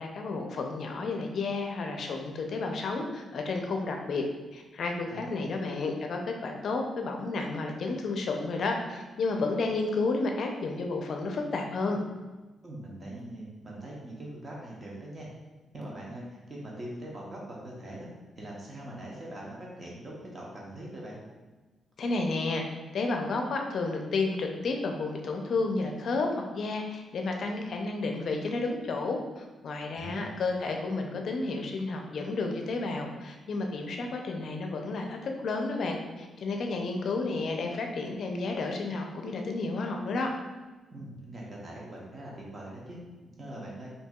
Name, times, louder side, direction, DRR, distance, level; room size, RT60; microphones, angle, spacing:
voice 1, 0.0-4.2 4.5-12.0 22.0-22.6 22.9-40.3, left 3 dB, 65° left, 3 dB, 0.5 m, -31 dB
voice 2, 5.1-5.6 12.6-15.3 15.7-18.1 18.4-21.2 29.9-30.4 40.9-43.9, right 1 dB, 35° right, -4 dB, 0.9 m, -42 dB
4.4 x 2.7 x 2.3 m, 1.2 s
cardioid pair, 95°, 0 cm